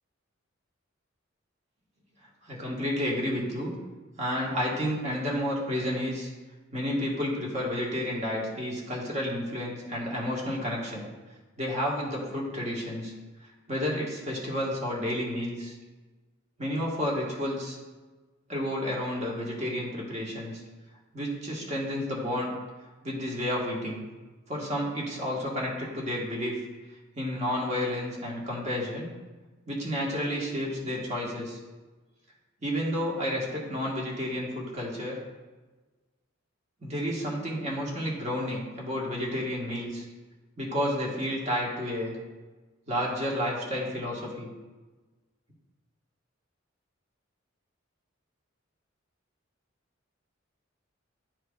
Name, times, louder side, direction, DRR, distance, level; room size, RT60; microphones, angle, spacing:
voice 1, 2.4-3.7 4.2-6.3 6.7-11.0 11.6-13.1 13.7-15.7 16.6-17.8 18.5-20.6 21.1-22.5 23.0-24.0 24.5-26.6 27.1-29.1 29.7-31.6 32.6-35.1 36.8-40.1 40.6-42.2 42.9-44.5, equal, 35° right, -3 dB, 1.4 m, -31 dB
10.0 x 4.4 x 2.3 m, 1.3 s
head